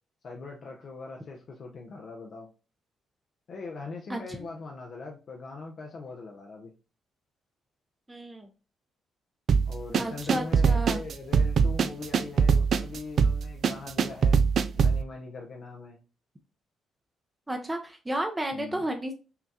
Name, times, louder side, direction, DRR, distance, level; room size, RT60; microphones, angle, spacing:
voice 1, 0.2-2.5 3.5-6.7 9.7-14.4 14.7-16.0 18.5-18.8, left 3 dB, 60° left, 0.7 m, -41 dB
voice 2, 8.1-8.5 9.9-11.0 17.5-19.1, right 1 dB, 15° right, 0.6 m, -32 dB
sound 1, 9.5-15.0, right 6 dB, 60° right, 0.3 m, -23 dB
5.7 x 2.3 x 2.7 m
supercardioid pair, 60°, 0 cm